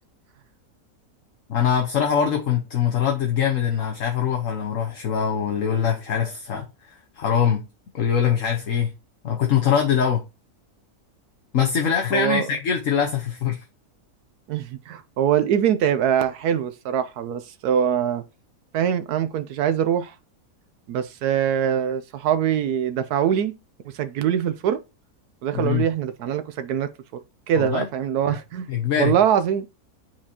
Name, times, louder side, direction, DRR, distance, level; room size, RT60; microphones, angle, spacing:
voice 1, 1.5-6.6 7.2-7.6 7.9-8.9 9.2-10.2 11.5-13.6 25.5-25.9 27.6-27.8 28.7-29.1, left 8 dB, 60° left, 1.4 m, -22 dB
voice 2, 12.1-12.5 14.5-18.2 18.7-20.1 20.9-23.5 23.8-24.8 25.4-26.9 27.5-28.7 29.0-29.7, right 9 dB, 85° right, 1.2 m, -23 dB
8.9 x 4.8 x 2.9 m
omnidirectional pair, 1.6 m